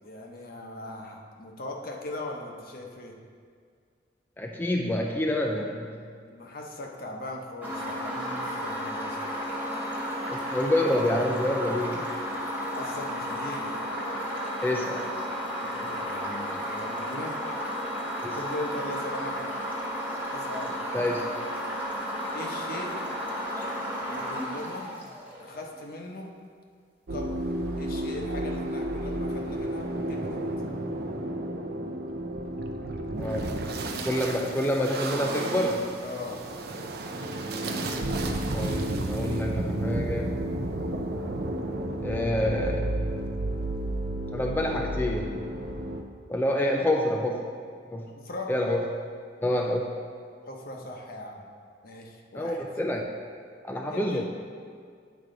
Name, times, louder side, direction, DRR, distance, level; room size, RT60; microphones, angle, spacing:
voice 1, 0.0-3.2 6.2-9.2 12.6-13.8 15.6-17.4 18.3-19.4 20.3-20.8 22.3-23.0 24.0-24.9 25.4-26.3 27.1-27.4 27.8-30.4 36.0-36.4 48.0-48.5 50.4-51.4 51.8-52.7 53.9-54.2, left 1 dB, 55° left, 1 dB, 0.9 m, -39 dB
voice 2, 4.4-5.9 10.3-12.1 14.6-15.1 18.2-18.4 20.9-21.2 23.6-23.7 33.2-33.4 34.0-35.9 38.5-40.3 42.0-42.9 44.3-45.4 46.3-47.5 47.9-48.1 48.5-48.9 49.4-50.0 52.3-53.1 53.6-54.2, left 1 dB, 10° left, 0 dB, 0.4 m, -27 dB
sound 1, 7.6-25.6, equal, 10° right, 1.1 m, -33 dB
sound 2, 27.1-46.0, right 1 dB, 60° right, 0.6 m, -32 dB
9.4 x 4.7 x 3.9 m, 2.1 s
head